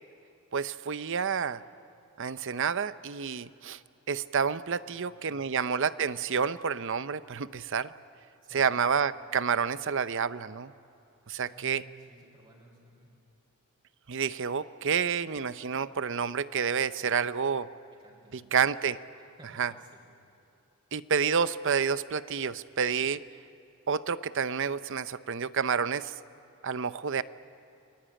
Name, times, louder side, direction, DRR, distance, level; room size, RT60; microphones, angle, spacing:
voice 1, 0.5-1.6 2.2-3.8 4.1-7.9 8.5-10.7 11.3-11.8 14.1-17.7 18.5-19.0 19.6-19.7 20.9-23.2 23.9-26.1 26.6-27.2, right 6 dB, 60° right, 14 dB, 0.7 m, -29 dB
voice 2, 4.7-5.6 8.4-8.8 11.4-13.1 18.0-18.4 19.4-20.1, right 1 dB, 25° right, -2 dB, 5.0 m, -56 dB
28.0 x 21.5 x 9.0 m, 2.9 s
head